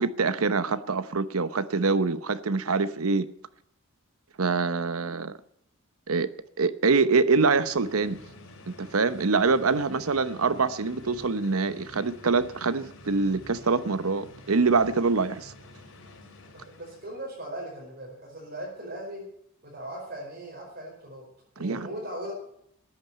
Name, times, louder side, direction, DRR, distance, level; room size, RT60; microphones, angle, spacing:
voice 1, 0.0-3.3 4.4-5.4 6.1-6.3 6.6-8.2 8.8-15.5 21.6-21.9, right 4 dB, 85° right, 0.9 m, -25 dB
sound 1, 7.3-17.3, left 2 dB, 80° left, 3.5 m, -49 dB
voice 2, 16.5-19.2 19.6-21.3 21.6-22.3, right 1 dB, 50° right, 4.9 m, -38 dB
13.5 x 8.9 x 9.2 m
head